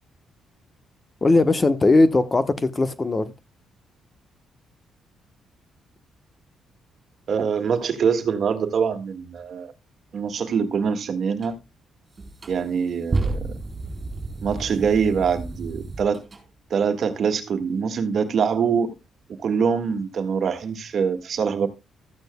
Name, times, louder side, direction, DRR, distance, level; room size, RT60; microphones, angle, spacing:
voice 1, 1.2-3.3, left 2 dB, 25° left, 1.0 m, -19 dB
voice 2, 7.3-9.7 10.1-11.6 12.5-13.5 14.4-16.2 16.7-18.9 19.4-21.7, right 6 dB, 55° right, 1.6 m, -24 dB
sound 1, 11.4-11.5 12.1-16.4, right 3 dB, 30° right, 4.1 m, -31 dB
14.0 x 9.0 x 2.2 m
cardioid pair, 90°, 0 cm